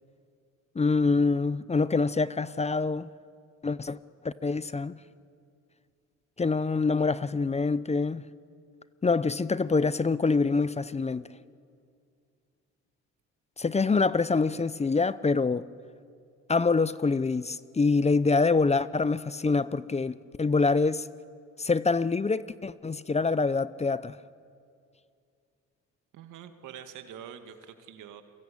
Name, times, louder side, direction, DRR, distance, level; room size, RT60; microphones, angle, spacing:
voice 1, 0.8-3.1 3.6-4.0 4.2-5.0 6.4-8.2 9.0-11.2 13.6-15.7 16.5-21.1 21.6-24.2, left 4 dB, 20° left, 0.7 m, -25 dB
voice 2, 26.1-28.2, right 9 dB, 85° right, 2.1 m, -45 dB
29.0 x 23.0 x 8.7 m
cardioid pair, 90°, 30 cm